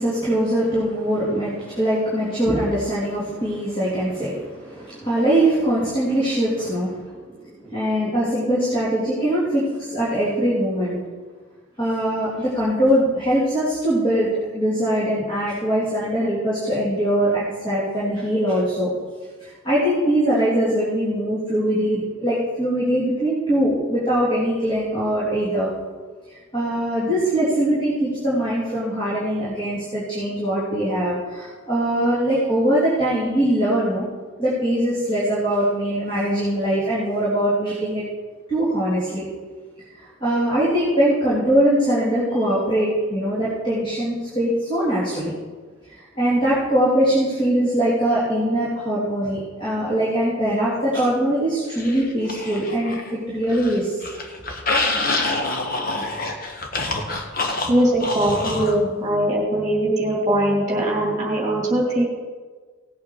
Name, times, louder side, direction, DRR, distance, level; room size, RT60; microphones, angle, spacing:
voice 1, 0.0-11.0 11.8-18.9 19.4-25.7 26.5-34.1 34.4-38.0 38.5-39.2 40.2-45.3 45.9-53.9, right 1 dB, 25° left, -9 dB, 3.1 m, -22 dB
sound 1, 51.8-53.1 53.4-58.8, left 2 dB, 45° left, 1.3 m, -26 dB
voice 2, 57.7-62.0, right 1 dB, 15° right, -2 dB, 2.7 m, -21 dB
17.0 x 8.4 x 4.7 m, 1.4 s
head